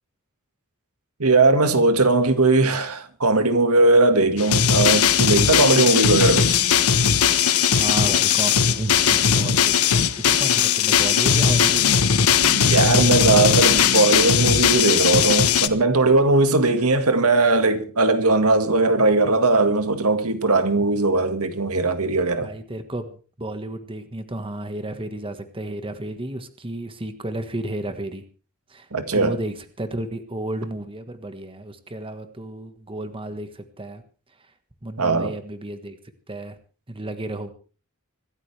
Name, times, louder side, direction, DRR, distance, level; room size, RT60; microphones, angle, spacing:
voice 1, 1.2-6.6 12.4-22.5 28.9-29.3 35.0-35.3, right 3 dB, 75° right, 1.9 m, -19 dB
sound 1, 4.4-15.7, left 7 dB, 80° left, 1.2 m, -18 dB
voice 2, 7.8-11.8 13.0-13.6 14.0-14.1 22.4-28.2 28.7-34.0 34.8-36.0 36.3-36.6 36.9-37.5, right 1 dB, 25° right, 1.5 m, -32 dB
25.5 x 13.5 x 3.4 m
head